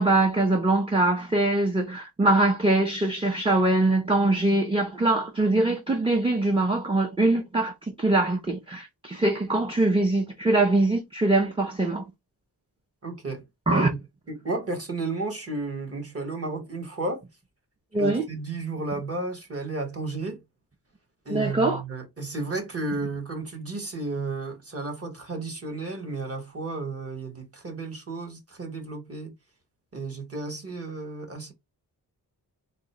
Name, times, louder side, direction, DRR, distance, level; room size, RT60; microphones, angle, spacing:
voice 1, 0.0-12.0 13.7-13.9 17.9-18.2 21.3-21.8, right 2 dB, 15° right, 0.5 m, -23 dB
voice 2, 13.0-14.0 14.3-17.2 18.0-20.4 21.2-29.3 29.9-31.5, right 3 dB, 35° right, 1.2 m, -33 dB
3.6 x 2.1 x 4.0 m
wide cardioid pair, 135°, 41 cm